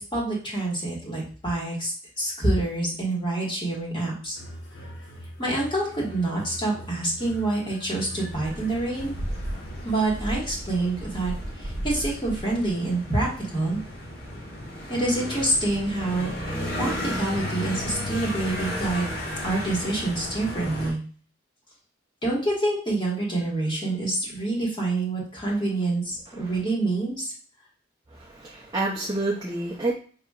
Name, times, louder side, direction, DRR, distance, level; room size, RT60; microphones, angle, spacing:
voice 1, 0.0-4.4 5.4-9.2 9.8-13.8 14.9-16.3 16.8-19.1 19.4-21.0 22.2-27.3, right 2 dB, 25° left, -5 dB, 1.6 m, -27 dB
sound 1, 4.3-10.1, equal, 85° left, 1.1 m, -42 dB
sound 2, 8.3-20.9, equal, 55° left, 1.4 m, -33 dB
voice 2, 28.1-29.9, right 2 dB, 20° right, -3 dB, 0.5 m, -28 dB
5.4 x 2.8 x 2.4 m, 0.42 s
head